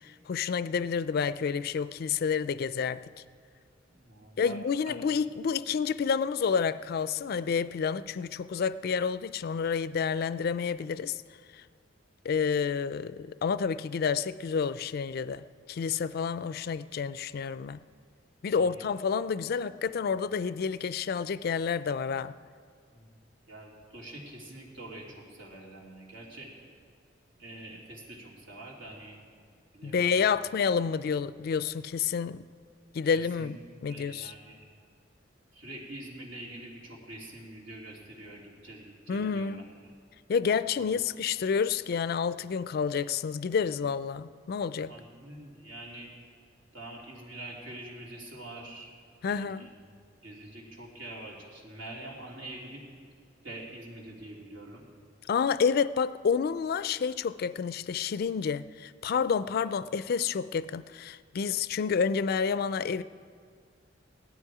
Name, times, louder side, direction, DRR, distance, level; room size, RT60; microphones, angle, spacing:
voice 1, 0.0-3.0 4.4-11.2 11.5-11.6 12.2-17.8 18.4-22.3 29.8-32.5 32.9-34.3 39.1-39.6 40.3-44.9 49.2-49.7 55.3-63.0, left 6 dB, 55° left, 0.3 m, -29 dB
voice 2, 3.9-4.6 4.9-5.0 18.5-18.9 22.9-23.2 23.5-26.5 27.4-29.2 29.7-30.3 33.1-33.6 33.9-34.7 35.5-39.6 40.7-41.0 44.9-46.1 46.7-48.9 49.3-49.7 50.2-52.9 53.4-54.8, right 1 dB, 85° right, 3.0 m, -45 dB
17.0 x 12.0 x 4.8 m
head